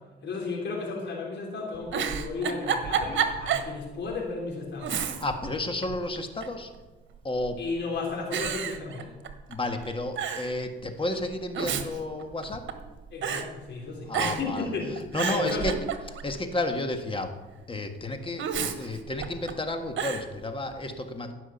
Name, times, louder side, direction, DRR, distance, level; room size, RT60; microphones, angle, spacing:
voice 1, 0.2-5.0 7.6-9.1 13.1-15.0 15.3-15.6, left 3 dB, 65° left, -2 dB, 3.7 m, -33 dB
Giggle, 1.7-3.7 4.1-4.2 4.8-5.5 5.8-6.6 7.4-7.8 8.3-9.5 9.8-9.9 10.2-10.5 11.3-12.9 13.2-13.5 14.1-14.6 15.0-16.3 18.4-19.5 20.0-20.3, right 7 dB, 70° right, 1.3 m, -30 dB
voice 2, 5.0-6.7 7.2-7.6 9.5-12.7 14.1-14.7 15.1-15.7 16.2-17.3 17.7-18.5 18.8-21.3, left 2 dB, 25° left, 6 dB, 1.7 m, -31 dB
16.0 x 6.1 x 7.2 m, 1.1 s
cardioid pair, 90°, 20 cm